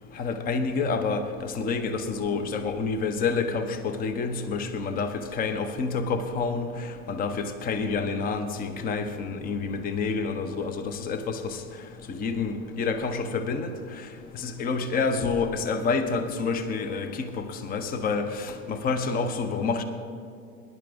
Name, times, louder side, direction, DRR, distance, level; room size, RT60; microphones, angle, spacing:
voice 1, 0.2-11.6 12.1-13.7 14.3-19.8, left 4 dB, 20° left, 10 dB, 0.8 m, -28 dB
20.5 x 11.0 x 3.6 m, 2.2 s
figure-of-eight pair, 90°, 43 cm